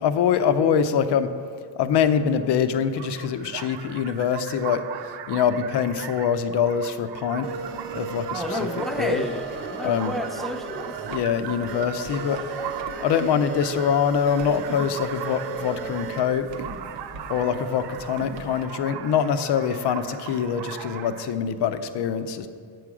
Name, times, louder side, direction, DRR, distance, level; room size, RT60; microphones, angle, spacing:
voice 1, 0.0-1.3 1.8-4.8 5.3-7.5 7.9-9.2 9.8-10.2 11.1-12.4 13.0-16.5 17.3-22.5, left 7 dB, 55° left, 10 dB, 0.7 m, -24 dB
sound 1, 3.0-21.3, right 10 dB, 55° right, 0.6 m, -39 dB
sound 2, 7.4-18.6, right 5 dB, 80° right, 1.1 m, -36 dB
voice 2, 8.3-11.0, equal, ahead, 6 dB, 0.4 m, -31 dB
Wind instrument woodwind instrument, 8.7-13.3, right 3 dB, 25° right, 0.8 m, -45 dB
7.9 x 6.1 x 4.9 m, 2.1 s
supercardioid pair, 85°, 49 cm